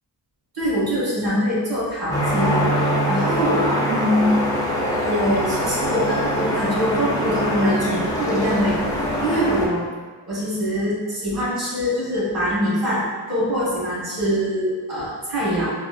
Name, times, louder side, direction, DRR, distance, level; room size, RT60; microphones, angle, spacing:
voice 1, 0.5-4.3 5.0-9.8 10.3-15.7, equal, 60° right, -8 dB, 1.5 m, -23 dB
sound 1, 2.1-9.7, equal, 10° left, 0.3 m, -23 dB
4.1 x 2.1 x 2.5 m, 1.4 s
wide cardioid pair, 175°, 42 cm